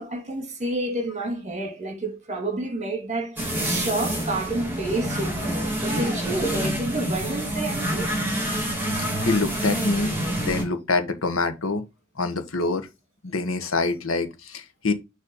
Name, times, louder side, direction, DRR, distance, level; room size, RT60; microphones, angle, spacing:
voice 1, 0.0-8.1, right 2 dB, 35° right, 1.9 m, -29 dB
sound 1, 3.4-10.6, right 1 dB, 10° right, 3.1 m, -27 dB
voice 2, 9.2-11.8 12.2-12.9 13.2-14.9, left 3 dB, 80° left, 1.3 m, -25 dB
7.0 x 3.3 x 5.4 m
head